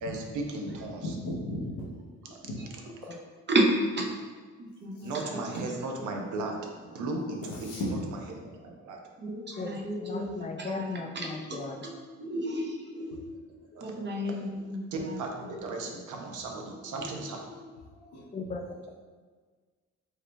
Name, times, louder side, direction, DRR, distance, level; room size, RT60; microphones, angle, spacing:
voice 1, 0.0-1.1 2.3-2.4 3.0-3.1 5.0-9.0 13.7-13.9 14.9-17.4, right 2 dB, 80° right, 2 dB, 0.7 m, -36 dB
voice 2, 1.2-1.7 2.4-2.6 5.0-5.1 7.6-8.1 9.5-9.7 13.7-14.0 15.4-15.8 18.0-18.3, left 1 dB, 90° left, -7 dB, 0.8 m, -36 dB
voice 3, 3.5-4.1 4.8-5.4 9.2-10.9 11.1-11.6 12.2-13.2 13.8-15.2, right 1 dB, 35° right, 0 dB, 0.7 m, -31 dB
voice 4, 9.6-11.9 18.3-18.9, left 3 dB, 25° left, 4 dB, 0.4 m, -37 dB
4.7 x 3.2 x 2.2 m, 1.5 s
cardioid pair, 90°, 30 cm